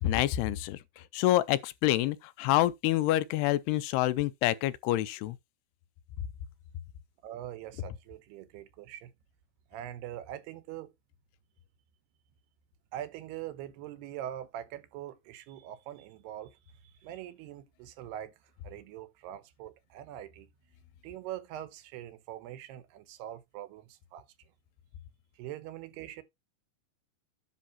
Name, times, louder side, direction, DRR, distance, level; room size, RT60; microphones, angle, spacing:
voice 1, 0.0-5.4, left 15 dB, 90° left, 2.7 m, -27 dB
voice 2, 7.2-9.1 9.7-10.9 12.9-18.3 18.6-20.5 21.0-24.3 25.4-26.2, right 12 dB, 90° right, 3.0 m, -43 dB
10.0 x 3.5 x 5.6 m
omnidirectional pair, 4.5 m